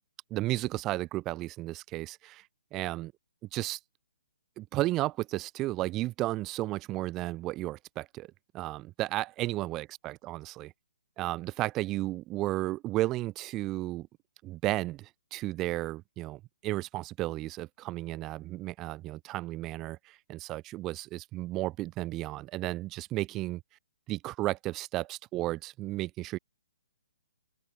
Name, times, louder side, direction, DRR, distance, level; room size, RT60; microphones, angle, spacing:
voice 1, 0.3-2.5 2.7-3.1 3.5-3.8 4.6-8.3 8.5-10.7 11.2-14.1 14.4-23.6 24.1-26.4, right 17 dB, 25° right, 1.3 m, -33 dB
figure-of-eight pair, 130°, 0 cm